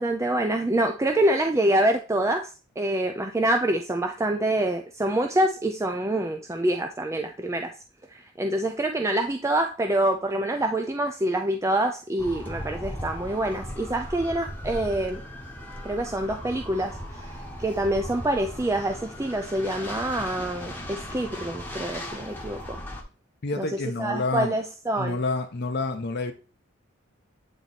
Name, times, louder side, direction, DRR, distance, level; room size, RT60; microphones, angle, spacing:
voice 1, 0.0-7.7 8.1-15.2 15.8-22.8 23.6-23.7 24.0-25.2, right 1 dB, 15° right, 4 dB, 0.4 m, -26 dB
sound 1, 12.2-23.0, equal, 10° left, 1.0 m, -38 dB
voice 2, 23.4-24.5 25.0-26.3, left 3 dB, 55° left, 6 dB, 0.7 m, -28 dB
8.9 x 3.0 x 4.0 m, 0.34 s
head